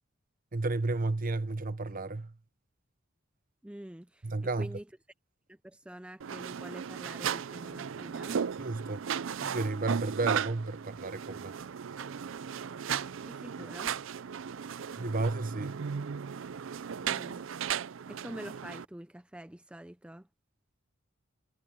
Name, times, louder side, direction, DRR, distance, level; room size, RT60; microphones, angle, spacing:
voice 1, 0.5-2.3 4.2-4.8 8.6-9.0 9.4-11.6 14.9-15.8, right 2 dB, 40° right, 0.9 m, -32 dB
voice 2, 3.6-4.3 4.6-4.8 5.5-8.4 13.2-14.0 17.0-20.3, right 1 dB, 5° right, 0.5 m, -46 dB
sound 1, 6.2-18.9, right 7 dB, 65° right, 0.4 m, -36 dB
head